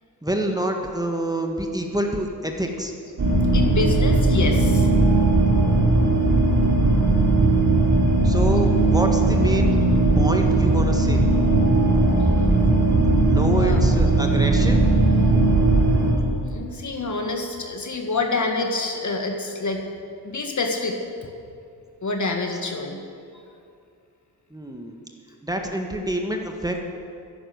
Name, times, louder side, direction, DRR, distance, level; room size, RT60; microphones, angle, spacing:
voice 1, 0.2-2.9 8.2-9.8 10.2-11.2 13.2-14.8 24.5-25.0 25.4-26.9, right 1 dB, 10° right, 2 dB, 1.7 m, -26 dB
sound 1, 3.2-16.1, right 2 dB, 50° right, 3.3 m, -18 dB
voice 2, 3.5-4.9 13.6-13.8 16.4-19.8 20.2-21.0 22.0-23.0, left 3 dB, 45° left, 3 dB, 1.9 m, -27 dB
11.0 x 10.5 x 8.0 m, 2.4 s
supercardioid pair, 50°, 40 cm